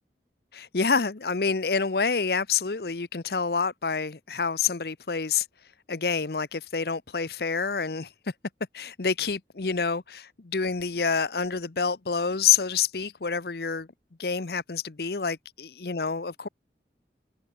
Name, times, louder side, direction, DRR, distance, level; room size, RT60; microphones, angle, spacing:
voice 1, 0.5-5.5 5.9-8.1 8.7-13.9 14.2-16.5, left 5 dB, 65° left, 0.8 m, -27 dB
head